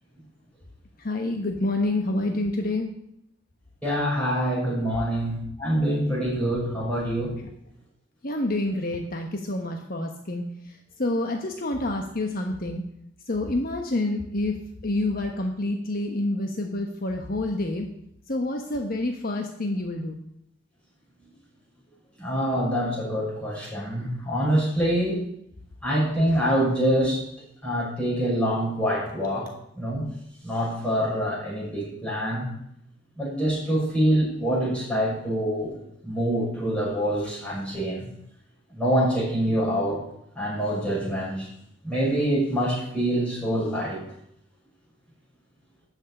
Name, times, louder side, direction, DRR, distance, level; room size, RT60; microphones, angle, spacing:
voice 1, 1.0-2.9 7.4-7.5 8.2-10.4 11.0-12.8 13.3-14.5 14.8-17.9 18.3-20.2, left 2 dB, 50° left, 3 dB, 1.2 m, -28 dB
voice 2, 3.8-7.3 22.2-25.2 25.8-27.2 27.6-29.5 29.8-30.1 30.4-32.5 33.2-35.7 36.0-38.1 38.7-40.0 40.4-41.5 41.8-44.0, equal, 5° left, -6 dB, 6.7 m, -25 dB
13.5 x 6.5 x 8.5 m, 0.74 s
head